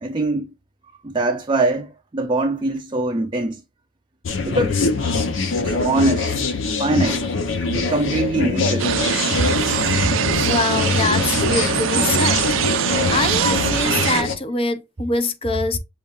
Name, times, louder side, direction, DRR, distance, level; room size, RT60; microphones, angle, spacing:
voice 1, 0.0-0.5 1.0-3.6 4.4-4.9 5.6-6.4 6.8-7.3 7.6-8.9, right 2 dB, 25° right, 0.4 m, -23 dB
sound 1, 4.2-14.4, left 4 dB, 75° left, 0.7 m, -23 dB
sound 2, 8.8-14.2, right 9 dB, 80° right, 0.5 m, -22 dB
voice 2, 10.4-12.4 13.1-15.8, left 3 dB, 30° left, 0.6 m, -24 dB
6.8 x 2.5 x 2.4 m
head